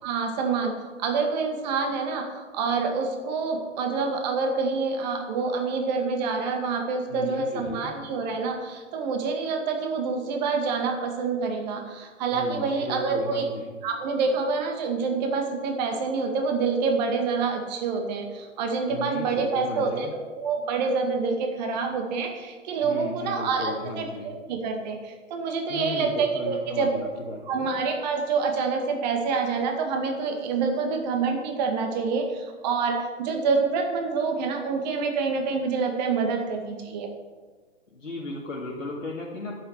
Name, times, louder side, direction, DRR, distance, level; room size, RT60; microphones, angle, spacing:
voice 1, 0.0-0.7 1.0-13.5 13.8-27.1 27.5-37.1, right 4 dB, 35° right, 4 dB, 2.1 m, -27 dB
voice 2, 7.1-7.9 12.3-13.8 18.9-20.1 22.8-24.3 25.7-27.7 37.9-39.6, left 2 dB, 80° left, -4 dB, 2.5 m, -36 dB
11.5 x 7.0 x 8.0 m, 1.4 s
figure-of-eight pair, 125°, 38 cm